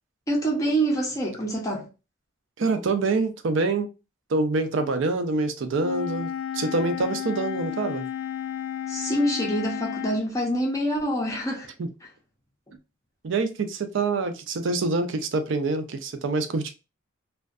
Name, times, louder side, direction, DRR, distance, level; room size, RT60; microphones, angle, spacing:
voice 1, 0.3-1.9 8.9-11.7, right 1 dB, 15° left, 0.5 m, -26 dB
voice 2, 2.6-3.9 4.3-8.1 11.8-11.9 13.2-16.7, right 3 dB, 60° right, 0.4 m, -26 dB
Wind instrument woodwind instrument, 5.8-10.2, left 9 dB, 75° left, 0.3 m, -32 dB
2.4 x 2.2 x 2.3 m
head